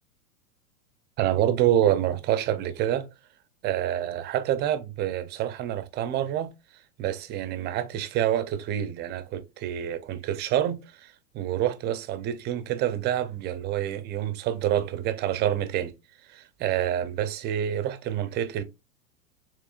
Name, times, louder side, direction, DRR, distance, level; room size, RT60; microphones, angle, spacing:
voice 1, 1.2-3.1 3.6-6.5 7.0-15.9 16.3-18.6, right 11 dB, 25° right, 0.6 m, -27 dB
6.8 x 3.1 x 2.4 m
hypercardioid pair, 125°, 45 cm